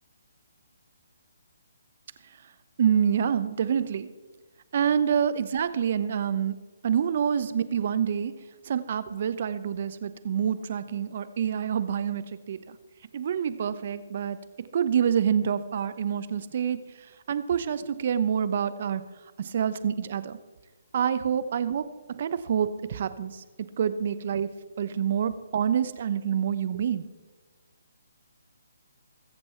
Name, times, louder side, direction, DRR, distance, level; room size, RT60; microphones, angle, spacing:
voice 1, 2.8-4.1 4.7-6.6 6.8-8.4 8.6-12.8 13.1-16.8 17.3-19.0 19.4-20.4 20.9-24.5 24.8-27.0, right 8 dB, 50° right, 13 dB, 0.9 m, -27 dB
22.0 x 7.8 x 4.5 m, 1.3 s
figure-of-eight pair, 145°, 0 cm